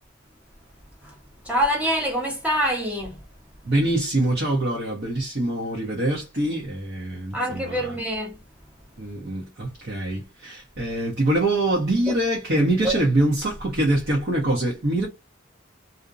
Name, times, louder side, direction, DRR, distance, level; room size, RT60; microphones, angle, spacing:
voice 1, 1.4-3.2 7.3-8.4 12.1-12.2 12.8-12.9, equal, 5° right, 0.8 m, -25 dB
voice 2, 3.6-7.9 9.0-15.1, right 1 dB, 55° right, 0.8 m, -24 dB
2.5 x 2.1 x 2.5 m
head